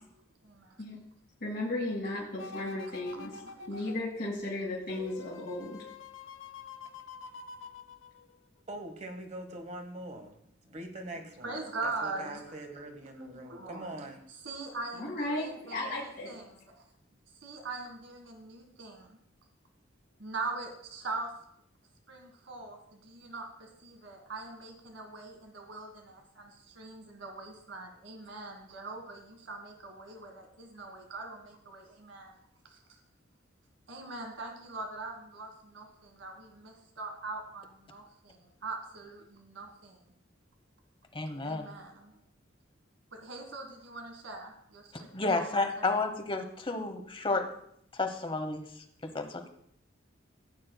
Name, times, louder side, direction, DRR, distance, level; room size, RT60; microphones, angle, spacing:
voice 1, 0.1-0.8 2.3-2.8 3.1-3.9 11.4-12.6 12.9-13.9 14.4-16.5 17.4-19.2 20.2-21.3 22.1-32.3 32.7-32.8 33.9-37.6 37.9-40.0 41.4-42.1 43.1-44.9 45.3-45.5, right 3 dB, 85° right, 2 dB, 1.7 m, -42 dB
voice 2, 1.4-3.4 3.7-5.8 14.9-16.4, left 2 dB, 50° left, -5 dB, 2.0 m, -35 dB
sound 1, 2.4-8.6 9.1-9.2, left 4 dB, 90° left, 0.7 m, -47 dB
voice 3, 8.7-10.4 10.6-14.3, right 1 dB, 40° right, 5 dB, 1.4 m, -43 dB
voice 4, 41.1-41.7 45.1-47.4 47.9-48.7 49.1-49.5, left 3 dB, 25° left, 6 dB, 1.0 m, -31 dB
16.0 x 8.6 x 2.2 m, 0.70 s
head